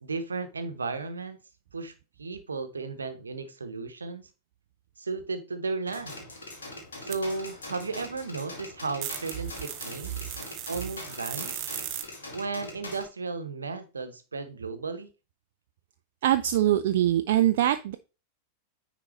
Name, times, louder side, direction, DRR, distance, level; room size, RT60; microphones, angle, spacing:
voice 1, 0.0-1.4 1.7-4.3 5.0-6.3 7.0-10.1 10.7-11.7 12.3-15.1, right 4 dB, 75° right, 8 dB, 0.9 m, -34 dB
sound 1, 5.9-13.1, left 2 dB, 70° left, 2.0 m, -42 dB
sound 2, 7.1-7.2 9.0-12.0, right 11 dB, 40° right, 0.9 m, -37 dB
voice 2, 16.2-17.9, right 12 dB, 55° right, 9 dB, 0.4 m, -23 dB
9.5 x 3.8 x 3.1 m, 0.31 s
figure-of-eight pair, 90°, 0 cm